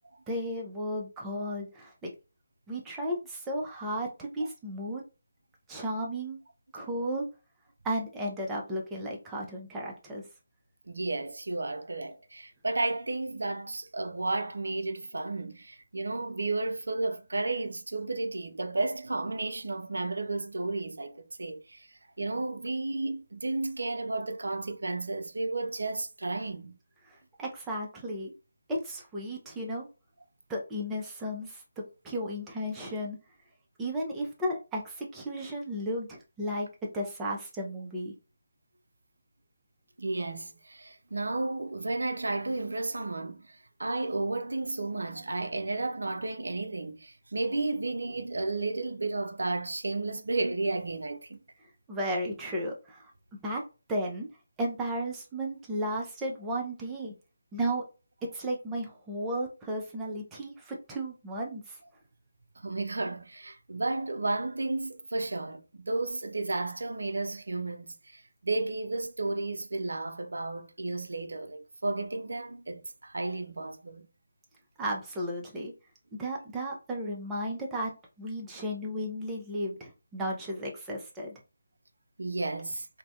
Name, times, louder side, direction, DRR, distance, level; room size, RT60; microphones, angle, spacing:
voice 1, 0.3-2.1 2.7-5.0 5.7-6.4 6.7-7.3 7.8-10.3 27.0-28.3 28.7-29.9 30.5-33.2 33.8-38.1 51.9-53.6 53.9-54.3 54.6-57.1 57.5-57.8 58.2-61.8 74.8-75.7 76.1-77.9 78.2-81.3, equal, 10° right, 0.5 m, -34 dB
voice 2, 10.9-21.9 22.2-26.8 37.0-37.1 40.0-51.4 62.6-74.1 82.2-82.9, right 2 dB, 70° right, 0.4 m, -33 dB
2.6 x 2.1 x 2.4 m
figure-of-eight pair, 155°, 0 cm